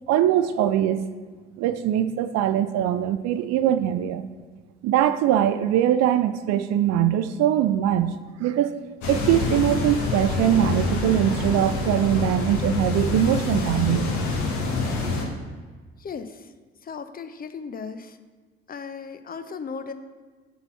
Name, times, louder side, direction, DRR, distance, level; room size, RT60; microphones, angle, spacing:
voice 1, 0.1-1.0 1.6-4.2 4.8-8.1 8.4-8.7 9.1-14.1, right 11 dB, 55° right, 11 dB, 0.5 m, -22 dB
sound 1, 9.0-15.3, left 3 dB, 65° left, 1.3 m, -26 dB
voice 2, 16.0-16.5 16.8-18.2 18.7-19.9, left 5 dB, 30° left, 10 dB, 0.5 m, -36 dB
5.6 x 4.0 x 5.7 m, 1.4 s
figure-of-eight pair, 50°, 32 cm